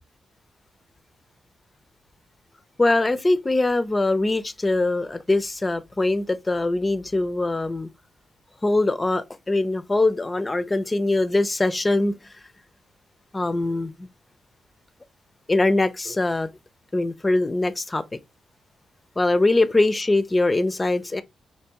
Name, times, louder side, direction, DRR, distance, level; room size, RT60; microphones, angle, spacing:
voice 1, 2.8-7.9 8.6-12.1 13.3-14.1 15.5-16.5 16.9-18.0 19.2-21.2, left 2 dB, 25° left, 0.4 m, -22 dB
3.4 x 2.7 x 2.8 m
supercardioid pair, 50°, 0 cm